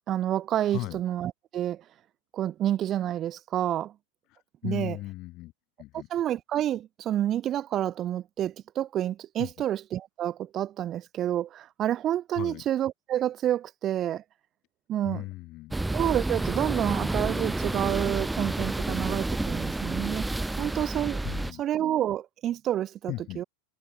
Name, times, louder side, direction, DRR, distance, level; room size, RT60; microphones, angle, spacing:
voice 1, 0.1-1.8 2.3-3.9 4.6-5.0 6.1-14.2 14.9-15.2 15.9-20.3 20.6-21.2 21.6-23.4, right 11 dB, 30° right, 0.8 m, -29 dB
voice 2, 4.3-5.5 5.8-6.1 9.4-9.5 12.3-12.6 15.0-15.8 21.2-21.6 23.1-23.4, left 19 dB, 40° left, 3.1 m, -37 dB
sound 1, 15.7-21.5, right 2 dB, 5° right, 0.5 m, -30 dB
figure-of-eight pair, 90°, 0 cm